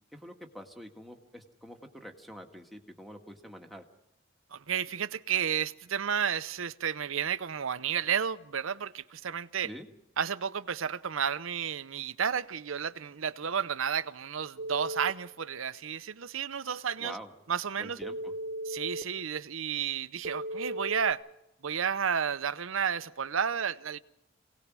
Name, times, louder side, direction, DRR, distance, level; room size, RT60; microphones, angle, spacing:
voice 1, 0.1-3.8 9.6-9.9 17.0-17.3 17.8-18.3, equal, ahead, 1.7 m, -46 dB
voice 2, 4.5-9.7 10.2-17.2 17.5-18.0 18.7-21.2 21.6-24.0, right 7 dB, 75° right, 0.7 m, -32 dB
Telephone, 14.6-15.1 18.0-19.0 20.2-21.1, right 1 dB, 45° right, 1.1 m, -36 dB
26.0 x 18.0 x 6.1 m
head